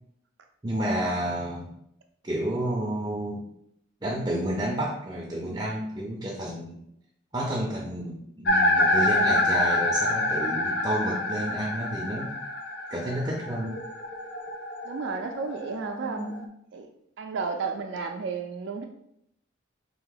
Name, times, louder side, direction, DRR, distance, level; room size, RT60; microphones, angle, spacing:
voice 1, 0.6-1.7 2.2-3.5 4.0-6.8 7.3-12.3 12.9-13.8, right 1 dB, 20° right, -2 dB, 0.5 m, -30 dB
sound 1, 8.5-16.5, left 1 dB, 60° left, 0.5 m, -27 dB
voice 2, 14.8-16.4 16.7-16.9 17.2-18.9, right 4 dB, 70° right, 3 dB, 0.4 m, -32 dB
3.6 x 2.8 x 3.9 m, 0.75 s
head